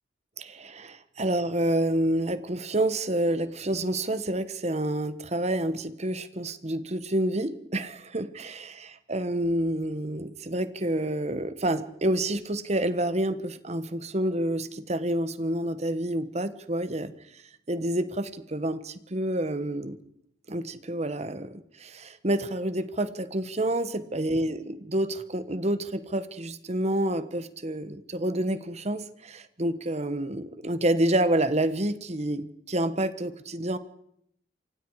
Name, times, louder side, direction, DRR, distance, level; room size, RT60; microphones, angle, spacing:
voice 1, 0.4-17.1 17.7-20.0 20.5-21.5 21.8-33.8, right 1 dB, 40° right, 12 dB, 1.3 m, -28 dB
28.0 x 25.0 x 4.9 m, 0.73 s
head